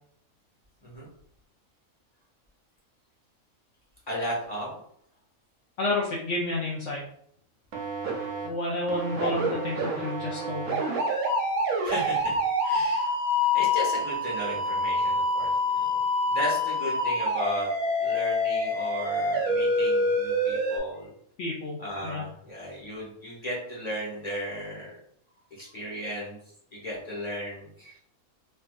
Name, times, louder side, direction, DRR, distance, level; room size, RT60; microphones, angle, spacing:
voice 1, 4.1-4.8 11.8-13.1 13.5-16.0 16.3-17.7 18.0-21.1 21.8-25.0 25.5-26.4 26.7-28.0, equal, 30° left, -5 dB, 1.0 m, -35 dB
voice 2, 5.8-7.0 8.4-10.8 21.4-22.3, left 2 dB, 65° left, -3 dB, 0.8 m, -30 dB
sound 1, 7.7-8.5 8.9-20.8, left 1 dB, 80° right, 1.2 m, -27 dB
3.3 x 2.6 x 2.3 m, 0.67 s
omnidirectional pair, 1.5 m